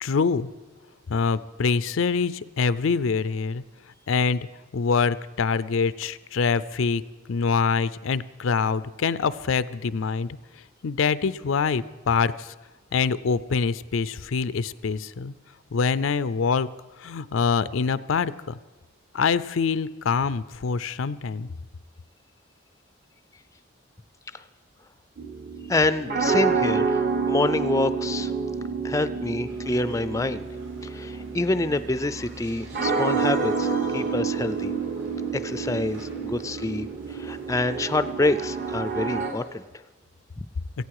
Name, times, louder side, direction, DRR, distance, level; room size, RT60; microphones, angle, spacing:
voice 1, 0.0-0.5 1.1-3.6 4.1-4.5 4.7-7.0 7.3-10.4 10.8-12.5 12.9-15.3 15.7-16.7 17.0-18.6 19.1-21.5, left 5 dB, 85° left, 16 dB, 0.5 m, -25 dB
sound 1, 25.2-39.3, right 5 dB, 50° right, 1.0 m, -28 dB
voice 2, 25.7-28.3 28.8-30.5 30.8-34.7 35.3-39.6 40.4-40.5, left 2 dB, 15° left, 13 dB, 0.4 m, -27 dB
sound 2, 29.5-39.5, right 1 dB, 65° right, 2.8 m, -48 dB
17.5 x 15.0 x 4.8 m, 1.2 s
head